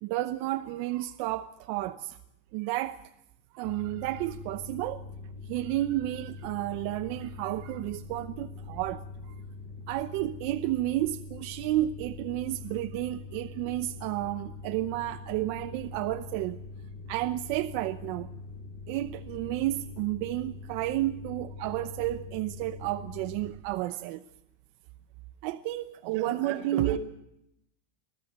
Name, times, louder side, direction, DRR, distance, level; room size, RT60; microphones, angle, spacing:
voice 1, 0.0-2.2 2.5-3.0 3.5-5.0 5.5-9.0 9.9-16.6 17.1-18.3 18.9-24.2 25.4-27.0, right 15 dB, 55° right, 0.9 m, -31 dB
sound 1, 3.6-23.5, left 3 dB, 55° left, 7.2 m, -43 dB
voice 2, 26.0-27.0, right 9 dB, 90° right, 3.9 m, -35 dB
25.0 x 17.0 x 8.1 m
supercardioid pair, 160°, 35 cm